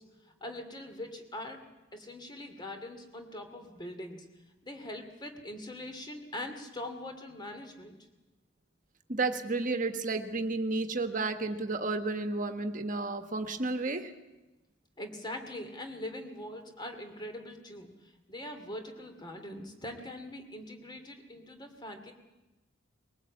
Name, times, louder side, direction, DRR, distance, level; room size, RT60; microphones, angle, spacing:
voice 1, 0.0-1.6 1.9-4.3 4.6-8.0 15.0-22.1, left 1 dB, 20° left, 6 dB, 2.5 m, -42 dB
voice 2, 9.1-14.1, right 3 dB, 40° right, 7 dB, 1.5 m, -32 dB
21.5 x 18.5 x 8.6 m, 1.1 s
head